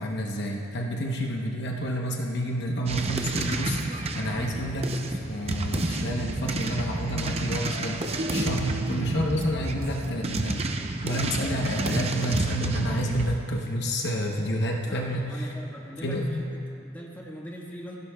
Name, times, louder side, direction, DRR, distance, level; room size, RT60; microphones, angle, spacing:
voice 1, 0.0-10.6 11.0-15.5 16.0-16.4, equal, 55° left, 0 dB, 0.9 m, -29 dB
sound 1, 2.9-13.4, right 2 dB, 30° right, 0.6 m, -30 dB
sound 2, 8.2-11.3, right 1 dB, 75° right, 1.9 m, -39 dB
voice 2, 14.9-18.0, equal, 10° left, -3 dB, 1.5 m, -41 dB
29.0 x 11.5 x 2.3 m, 3.0 s
head